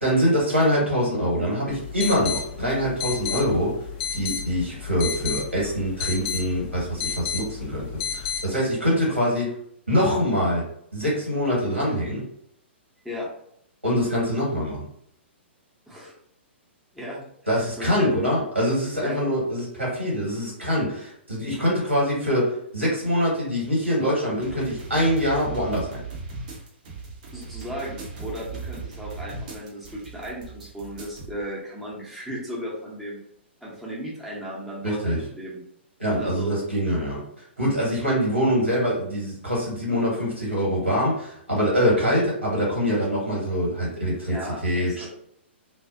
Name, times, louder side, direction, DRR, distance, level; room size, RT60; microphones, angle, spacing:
voice 1, 0.0-3.8 4.1-7.9 8.1-9.5 9.9-10.6 10.9-12.2 13.8-14.9 17.5-26.0 34.8-35.2 36.0-37.2 37.6-45.1, equal, 90° right, -5 dB, 1.4 m, -24 dB
sound 1, 1.7-8.4, left 7 dB, 30° left, 0.4 m, -32 dB
voice 2, 16.9-18.1 19.0-19.2 27.3-33.2 33.6-35.6 36.2-36.5 44.3-45.1, equal, ahead, -7 dB, 0.7 m, -35 dB
sound 2, 24.3-31.3, right 4 dB, 45° right, 0.6 m, -38 dB
2.5 x 2.0 x 2.5 m, 0.70 s
figure-of-eight pair, 115°, 6 cm